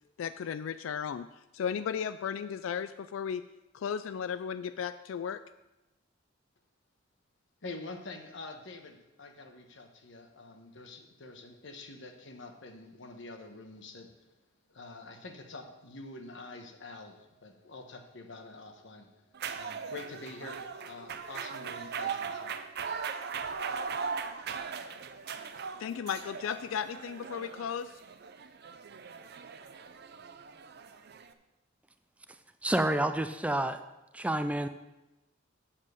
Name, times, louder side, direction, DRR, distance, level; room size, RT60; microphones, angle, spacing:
voice 1, 0.2-1.3 1.5-3.4 3.7-5.4 25.8-28.0, left 7 dB, 90° left, 12 dB, 0.3 m, -35 dB
voice 2, 7.6-14.3 14.7-19.2 19.5-22.6, left 2 dB, 70° left, 5 dB, 1.2 m, -46 dB
sound 1, 19.3-31.3, right 6 dB, 55° right, 0.6 m, -39 dB
voice 3, 32.6-33.8 34.1-34.7, right 1 dB, 5° right, 9 dB, 0.4 m, -29 dB
7.5 x 7.3 x 6.4 m, 0.98 s
head